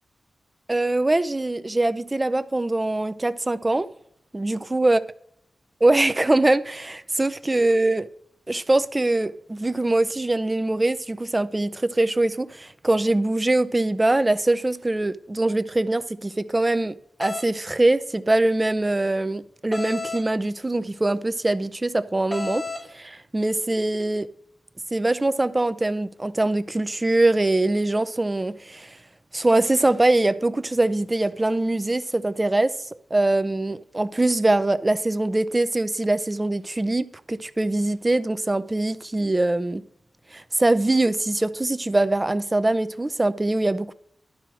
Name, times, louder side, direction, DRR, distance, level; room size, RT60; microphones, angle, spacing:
voice 1, 0.7-3.9 4.3-5.0 5.8-8.1 8.5-16.9 17.2-22.6 22.9-24.3 24.9-29.0 29.3-32.7 33.1-39.8 40.3-43.9, right 2 dB, 20° right, 0.5 m, -23 dB
sound 1, 17.2-17.5 19.7-20.3 22.3-22.9, left 3 dB, 20° left, 0.7 m, -31 dB
12.0 x 4.5 x 6.1 m
wide cardioid pair, 110°, 0 cm